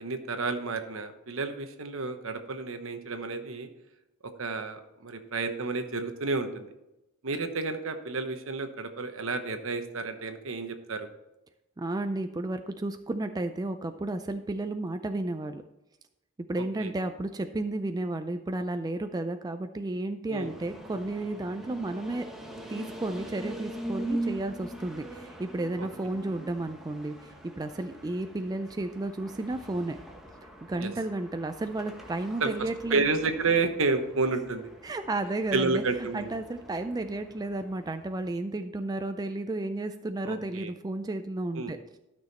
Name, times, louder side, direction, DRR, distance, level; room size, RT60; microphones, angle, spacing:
voice 1, 0.0-3.7 4.4-6.7 7.2-11.1 16.6-16.9 20.3-20.5 25.8-26.2 30.8-30.9 32.4-34.7 35.5-36.3 40.2-40.7 41.5-41.7, right 3 dB, 70° right, 7 dB, 1.1 m, -31 dB
voice 2, 11.8-15.6 16.4-22.3 22.7-30.0 30.7-33.1 34.8-35.8 36.1-41.8, right 2 dB, 20° right, 8 dB, 0.4 m, -32 dB
sound 1, 20.4-38.3, right 1 dB, ahead, 1.2 m, -42 dB
12.5 x 6.3 x 4.1 m, 0.93 s
head